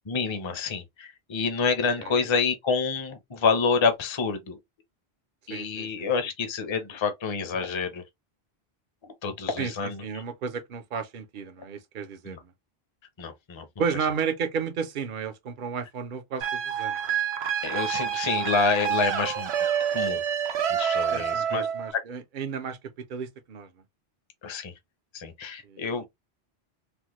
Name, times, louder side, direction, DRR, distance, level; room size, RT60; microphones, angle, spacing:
voice 1, 0.1-4.6 5.5-8.0 9.0-10.0 12.3-12.4 13.2-13.7 17.6-19.5 19.9-20.2 20.7-21.7 21.9-22.0 24.4-24.7 25.1-26.1, left 5 dB, 30° left, 0.6 m, -28 dB
voice 2, 2.0-2.3 5.5-6.1 9.6-12.5 13.8-17.0 21.1-22.8 23.1-23.7 25.6-26.1, right 6 dB, 55° right, 0.8 m, -33 dB
sound 1, 16.4-21.9, right 8 dB, 85° right, 0.9 m, -27 dB
3.5 x 2.1 x 3.0 m
omnidirectional pair, 1.1 m